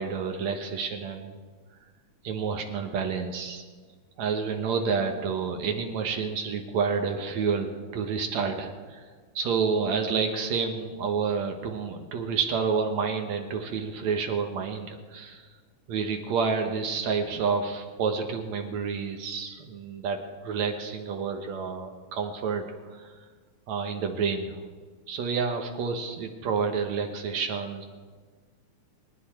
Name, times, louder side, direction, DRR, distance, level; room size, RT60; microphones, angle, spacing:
voice 1, 0.0-1.4 2.2-3.6 4.2-9.1 9.4-15.5 15.9-20.2 20.4-23.1 23.7-24.6 25.1-27.8, right 5 dB, 70° right, 4 dB, 2.4 m, -29 dB
25.0 x 10.5 x 4.4 m, 1.5 s
omnidirectional pair, 3.3 m